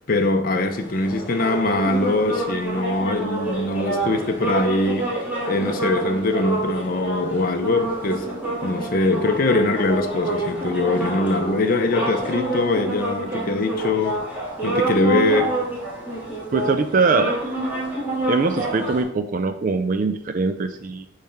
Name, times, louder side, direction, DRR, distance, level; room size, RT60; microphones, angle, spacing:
voice 1, 0.1-5.1 5.5-8.3 8.6-14.2 14.6-15.6, left 2 dB, 45° left, 0.6 m, -22 dB
sound 1, 0.7-19.0, right 2 dB, 10° right, 1.9 m, -27 dB
voice 2, 16.5-17.4 18.3-21.1, right 4 dB, 40° right, 0.3 m, -22 dB
7.0 x 3.2 x 5.6 m
head